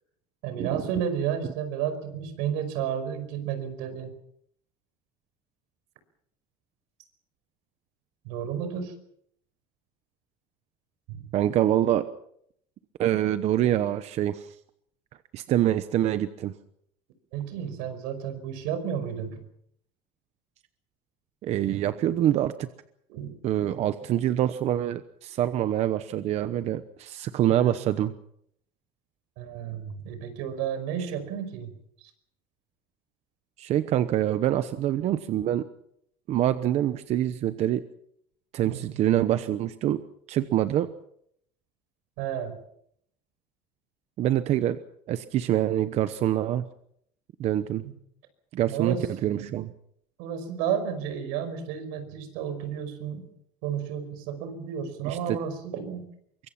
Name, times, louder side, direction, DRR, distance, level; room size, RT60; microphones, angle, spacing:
voice 1, 0.4-4.1 8.3-8.9 11.1-11.3 17.3-19.4 23.1-23.4 27.6-27.8 29.4-31.7 38.6-39.0 42.2-42.6 47.8-47.9 48.7-49.5 50.2-53.3 53.6-56.1, right 8 dB, 80° right, 10 dB, 5.4 m, -32 dB
voice 2, 11.3-12.1 13.0-14.5 15.3-16.5 21.4-22.7 23.4-28.1 33.6-35.6 36.3-37.8 38.5-40.0 40.3-40.9 44.2-44.8 45.1-46.6 47.4-47.8 48.5-49.0 49.2-49.7 55.0-55.4, right 12 dB, 45° right, 11 dB, 1.0 m, -25 dB
24.0 x 23.0 x 5.9 m, 0.71 s
cardioid pair, 155°, 16 cm